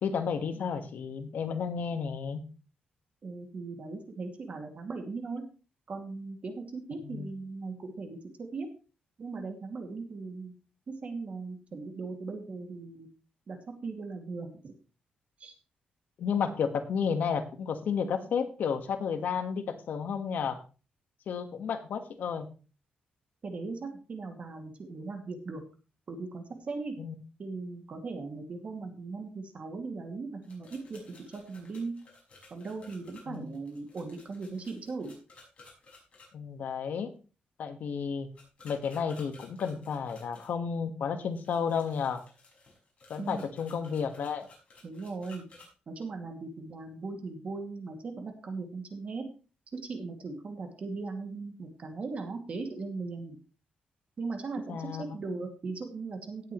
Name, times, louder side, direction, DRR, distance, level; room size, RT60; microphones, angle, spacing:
voice 1, 0.0-2.4 7.0-7.3 16.2-20.6 21.3-22.5 27.0-27.1 33.3-33.5 36.3-37.1 37.6-38.3 38.6-42.2 43.1-44.5 54.7-55.0, left 6 dB, 70° left, 7 dB, 1.6 m, -32 dB
voice 2, 3.2-5.4 5.9-8.7 9.2-10.5 10.9-13.1 13.5-13.6 13.8-14.7 15.4-15.5 23.4-25.6 26.1-26.9 27.4-31.0 31.3-31.9 32.5-35.1 43.2-43.4 44.8-45.5 45.9-49.2 49.7-53.4 54.2-56.5, right 3 dB, 45° right, 4 dB, 2.4 m, -38 dB
sound 1, 30.4-36.3 38.4-40.5 41.3-45.7, left 3 dB, 40° left, 6.0 m, -56 dB
17.5 x 8.2 x 3.2 m, 0.35 s
wide cardioid pair, 130°, 3 cm